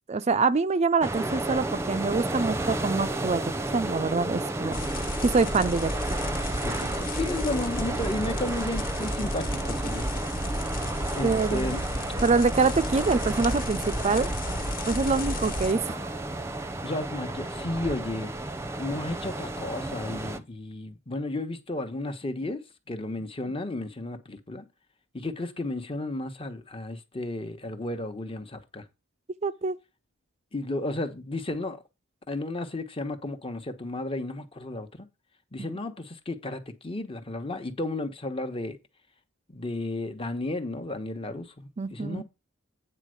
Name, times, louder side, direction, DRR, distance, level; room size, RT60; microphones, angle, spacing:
voice 1, 0.1-3.4 3.7-4.8 5.2-5.9 11.2-11.7 12.2-14.3 14.8-16.1 29.4-29.8 41.8-42.2, right 4 dB, 35° right, 0.4 m, -25 dB
sound 1, 1.0-20.4, right 2 dB, 15° right, 0.8 m, -32 dB
sound 2, 4.7-15.7, left 1 dB, 45° left, 1.4 m, -33 dB
voice 2, 6.6-10.1 11.1-11.8 12.8-12.9 16.8-18.3 18.7-24.7 25.1-28.8 30.5-31.8 32.3-35.1 35.5-38.8 39.5-42.2, left 2 dB, 30° left, 1.2 m, -33 dB
9.0 x 4.4 x 6.4 m
head